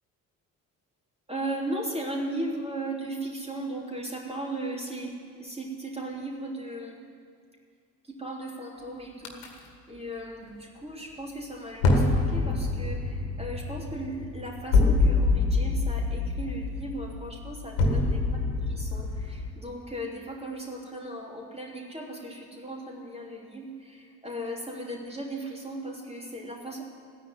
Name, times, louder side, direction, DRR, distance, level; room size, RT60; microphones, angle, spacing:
voice 1, 1.3-5.1 5.4-7.0 8.0-9.4 9.9-18.2 18.7-26.8, right 1 dB, 15° right, -2 dB, 3.3 m, -36 dB
sound 1, 9.2-9.5 11.8-19.5, left 3 dB, 70° left, 1.8 m, -26 dB
14.5 x 9.8 x 9.3 m, 2.2 s
figure-of-eight pair, 40°, 45 cm